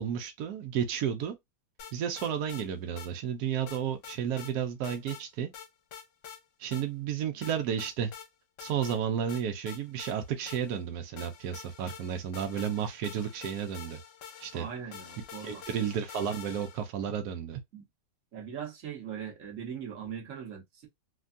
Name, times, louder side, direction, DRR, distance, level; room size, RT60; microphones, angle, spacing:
voice 1, 0.0-1.3 1.9-5.5 6.6-8.1 8.6-14.0 14.4-14.7 15.4-17.6, right 8 dB, 70° right, 1.0 m, -32 dB
sound 1, 1.8-2.7 3.0-3.1 3.7-4.5 4.8-5.2 5.5-6.4 6.7-6.9 7.4-8.3 8.6-9.0 9.3-10.8 11.2-16.9, left 8 dB, 80° left, 1.4 m, -47 dB
voice 2, 14.5-15.6 17.7-17.8 18.3-20.9, right 8 dB, 50° right, 1.2 m, -40 dB
3.4 x 2.2 x 2.5 m
omnidirectional pair, 2.1 m